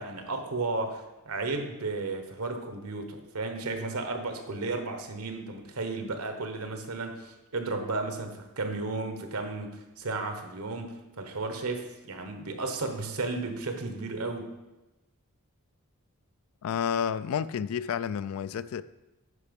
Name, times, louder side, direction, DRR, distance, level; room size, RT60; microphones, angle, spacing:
voice 1, 0.0-14.5, right 3 dB, 80° right, 1.1 m, -34 dB
voice 2, 16.6-18.8, left 7 dB, 70° left, 0.3 m, -30 dB
9.9 x 4.8 x 5.3 m
head